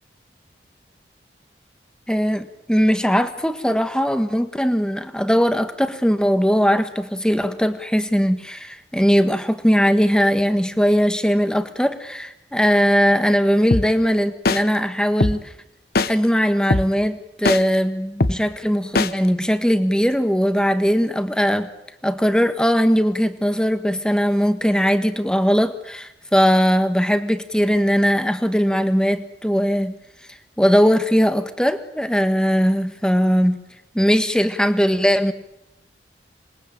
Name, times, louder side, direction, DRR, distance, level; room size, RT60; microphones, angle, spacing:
voice 1, 2.1-15.5 16.0-21.7 22.0-29.9 30.6-33.6 33.9-35.3, equal, 5° left, 9 dB, 1.6 m, -19 dB
sound 1, 13.7-13.8 14.5-14.6 15.2-15.3 16.0-16.1 16.7-16.8 17.5-17.6 18.2-18.3 19.0-19.1, left 2 dB, 60° left, 1.2 m, -18 dB
27.0 x 21.5 x 9.0 m, 0.86 s
head